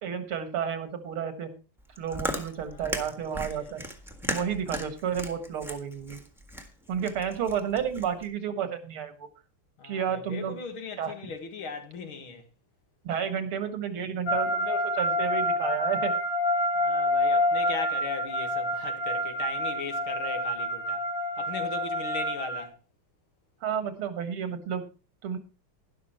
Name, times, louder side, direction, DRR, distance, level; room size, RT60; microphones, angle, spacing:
voice 1, 0.0-1.6 2.0-3.8 4.3-6.2 6.9-9.3 9.8-10.6 11.0-11.1 13.0-16.1 23.6-24.9 25.2-25.4, right 8 dB, 80° right, 2.5 m, -31 dB
Chewing mastication, 1.8-8.3, equal, ahead, 1.3 m, -37 dB
voice 2, 2.6-3.7 9.8-12.5 16.8-21.0 21.4-22.7, left 4 dB, 70° left, 2.6 m, -38 dB
sound 1, 14.3-22.6, left 1 dB, 55° left, 3.0 m, -28 dB
12.0 x 11.5 x 4.4 m
omnidirectional pair, 2.3 m